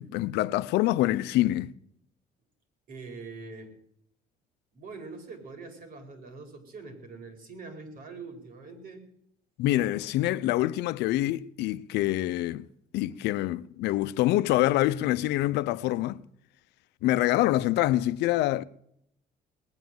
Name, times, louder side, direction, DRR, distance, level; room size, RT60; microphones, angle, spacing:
voice 1, 0.0-1.7 9.6-12.6 12.9-16.2 17.0-18.6, left 15 dB, 85° left, 0.7 m, -26 dB
voice 2, 2.9-3.7 4.7-9.0 13.1-13.2, right 4 dB, 60° right, 4.9 m, -43 dB
19.5 x 9.4 x 7.9 m
cardioid pair, 110°, 17 cm